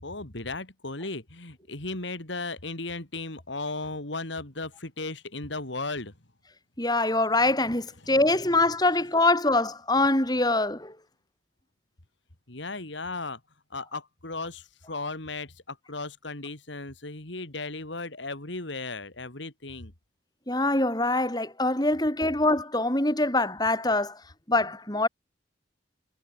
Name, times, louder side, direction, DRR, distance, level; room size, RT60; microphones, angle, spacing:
voice 1, 0.0-6.1 8.0-8.2 12.5-13.4 13.7-19.9, left 3 dB, 70° left, 3.1 m, -36 dB
voice 2, 6.8-10.9 20.5-24.2 24.5-25.1, left 2 dB, 20° left, 3.8 m, -24 dB
head